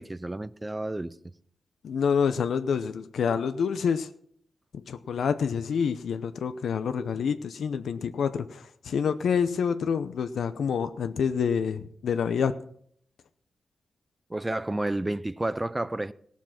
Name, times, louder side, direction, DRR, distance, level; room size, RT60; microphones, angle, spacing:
voice 1, 0.0-1.3 14.3-16.1, right 1 dB, 10° right, 0.4 m, -31 dB
voice 2, 1.8-4.1 4.9-12.5, left 6 dB, 80° left, 0.6 m, -27 dB
17.5 x 7.3 x 5.9 m
wide cardioid pair, 180°, 0 cm